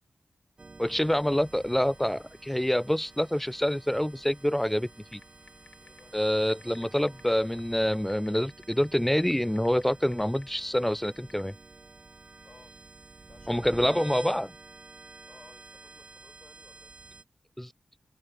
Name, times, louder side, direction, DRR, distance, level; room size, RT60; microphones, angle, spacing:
sound 1, 0.6-17.2, right 3 dB, 45° right, 1.4 m, -50 dB
voice 1, 0.8-5.2 6.1-11.5 13.5-14.5 17.6-17.7, equal, 10° left, 0.4 m, -26 dB
sound 2, 0.9-16.2, left 2 dB, 35° left, 4.8 m, -65 dB
sound 3, 5.1-11.5, left 4 dB, 75° left, 2.8 m, -56 dB
voice 2, 5.8-6.2 12.4-12.7 13.2-14.1 15.2-16.9, left 3 dB, 55° left, 6.7 m, -58 dB
cardioid pair, 45°, 2 cm